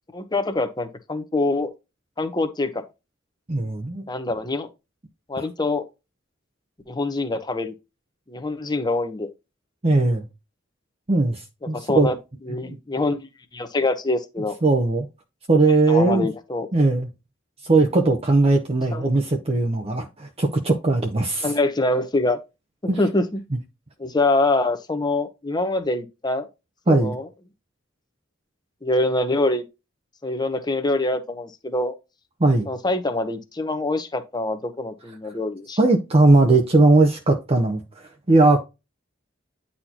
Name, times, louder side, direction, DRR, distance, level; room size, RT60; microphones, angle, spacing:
voice 1, 0.1-1.7 2.2-2.8 4.1-4.7 5.3-5.8 6.9-7.7 8.3-9.3 11.6-12.2 12.4-13.2 13.5-14.6 15.9-16.7 18.9-19.1 21.4-22.4 23.0-23.2 24.0-26.5 26.9-27.3 28.8-29.6 30.2-31.9 32.7-35.8, left 2 dB, 20° left, 0.9 m, -24 dB
voice 2, 3.5-4.0 9.8-10.3 11.1-12.1 14.6-15.1 15.5-16.3 16.7-17.1 17.6-21.5 22.9-23.0 26.9-27.2 32.4-32.7 35.8-37.8 38.3-38.6, right 2 dB, 30° right, 0.8 m, -19 dB
9.5 x 4.2 x 2.9 m
head